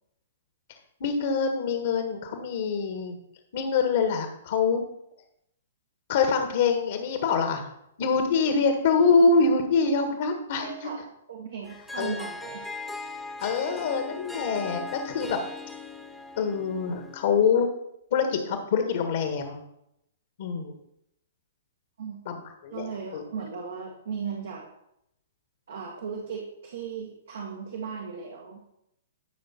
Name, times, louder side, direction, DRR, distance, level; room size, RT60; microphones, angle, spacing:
voice 1, 1.0-3.1 3.5-4.8 6.1-7.7 8.0-10.9 12.0-12.2 13.4-15.4 16.4-17.7 18.1-19.6 20.4-20.7 22.2-22.9 23.1-23.2, left 5 dB, 50° left, 5 dB, 1.5 m, -25 dB
voice 2, 10.6-11.0 11.3-12.6 22.0-22.2 22.7-24.6 25.7-28.6, right 6 dB, 65° right, 0 dB, 1.9 m, -36 dB
Harp, 11.6-17.4, left 3 dB, 5° left, 1.3 m, -39 dB
13.5 x 6.2 x 4.4 m, 0.79 s
figure-of-eight pair, 115°, 0 cm